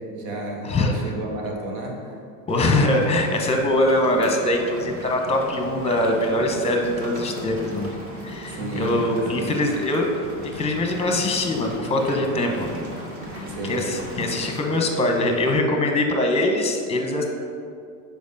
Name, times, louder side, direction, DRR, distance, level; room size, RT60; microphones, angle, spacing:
voice 1, 0.0-2.2 2.6-2.8 8.5-9.0 9.4-9.6 13.5-13.8, right 1 dB, 70° right, 0 dB, 1.6 m, -31 dB
voice 2, 2.5-7.9 8.2-12.7 13.3-17.2, left 1 dB, 15° left, 3 dB, 0.9 m, -23 dB
Rain, 2.5-15.5, equal, 30° right, 1.5 m, -37 dB
5.1 x 4.5 x 5.4 m, 2.4 s
hypercardioid pair, 100°, 45 cm